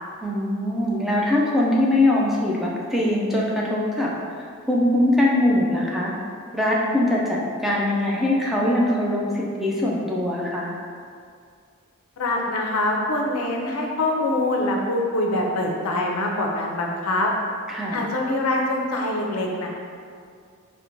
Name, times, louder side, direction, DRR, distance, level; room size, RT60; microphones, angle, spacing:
voice 1, 0.2-4.1 4.7-6.1 6.5-10.7 17.7-18.0, left 1 dB, ahead, -5 dB, 0.3 m, -22 dB
voice 2, 12.2-17.3 17.9-19.7, left 1 dB, 85° left, 0 dB, 0.5 m, -24 dB
4.3 x 2.1 x 2.6 m, 2.2 s
head